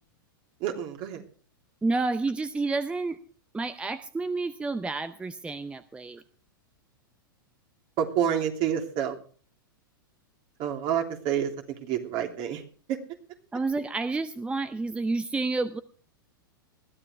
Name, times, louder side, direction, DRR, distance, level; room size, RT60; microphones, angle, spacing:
voice 1, 0.6-1.2 8.0-9.2 10.6-11.5 11.8-12.6 12.9-13.0, right 9 dB, 45° right, 4 dB, 3.0 m, -28 dB
voice 2, 1.8-3.2 3.5-6.2 13.5-15.8, right 3 dB, 10° right, 12 dB, 0.6 m, -29 dB
20.5 x 13.5 x 3.3 m, 0.43 s
hypercardioid pair, 110°, 12 cm